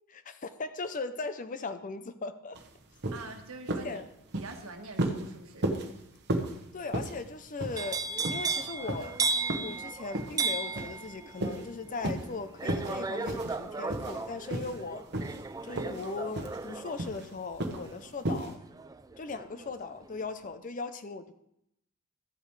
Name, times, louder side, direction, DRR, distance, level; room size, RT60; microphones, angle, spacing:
voice 1, 0.1-2.6 3.8-4.1 6.7-8.0 8.3-9.2 9.6-15.1 15.6-18.6 19.2-21.3, left 4 dB, 40° left, 11 dB, 0.5 m, -38 dB
sound 1, 2.5-2.7 3.0-3.3 3.7-3.9 4.3-4.6 5.0-5.3 5.6-5.9 6.3-6.6 6.9-7.2 7.6-8.0 8.2-8.5 8.9-9.1 9.5-9.8 10.1-10.4 10.8-11.1 11.4-11.6 12.0-12.3 12.6-13.0 13.3-13.6 13.9-14.2 14.5-14.8 15.1-15.4 15.7-16.1 16.3-16.6 17.0-17.2 17.6-17.9 18.2-18.5, right 1 dB, 50° right, 1.1 m, -33 dB
voice 2, 3.1-4.0 4.3-5.7, right 3 dB, 75° right, 4 dB, 1.4 m, -44 dB
sound 2, 7.8-19.7 20.1-20.5, right 4 dB, 15° right, 0.3 m, -35 dB
13.0 x 8.7 x 3.2 m, 0.79 s
head